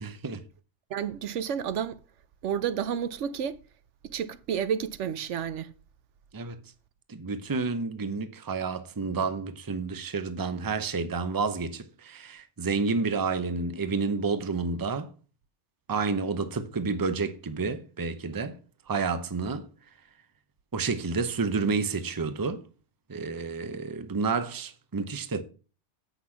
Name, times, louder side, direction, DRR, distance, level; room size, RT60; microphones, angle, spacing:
voice 1, 0.0-0.4 6.3-6.6 7.1-15.1 15.9-18.6 18.9-19.7 20.7-22.6 23.1-25.4, right 4 dB, 20° right, 0.6 m, -30 dB
voice 2, 0.9-2.0 2.4-3.6 4.0-5.7, right 8 dB, 80° right, 1.0 m, -30 dB
8.1 x 6.0 x 5.8 m
omnidirectional pair, 1.2 m